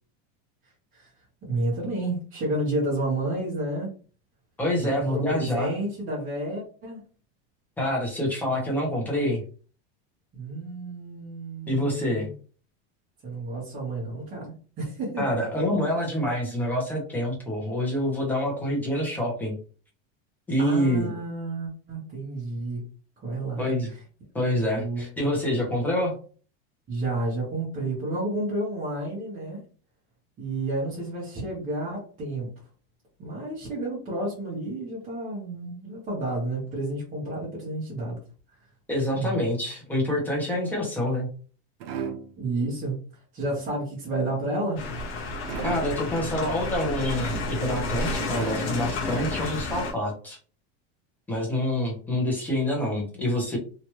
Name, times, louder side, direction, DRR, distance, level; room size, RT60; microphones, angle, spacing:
voice 1, 1.4-3.9 4.8-7.0 10.3-12.3 13.2-15.4 20.6-22.8 23.2-24.0 24.7-25.0 26.9-29.6 30.4-32.5 33.2-38.2 39.1-39.4 42.4-43.0 43.3-44.8, right 2 dB, 25° right, -7 dB, 1.1 m, -31 dB
voice 2, 4.6-5.7 7.8-9.4 11.7-12.3 15.2-19.6 20.5-21.1 23.6-23.9 24.3-26.1 38.9-41.3 45.6-50.4 51.3-53.6, left 1 dB, 5° left, -2 dB, 0.8 m, -26 dB
sound 1, 41.8-42.7 45.5-46.2 48.3-49.1, right 7 dB, 65° right, 0.7 m, -36 dB
sound 2, 44.8-49.9, left 2 dB, 35° left, 0.9 m, -30 dB
3.0 x 2.5 x 3.0 m, 0.39 s
supercardioid pair, 170°, 32 cm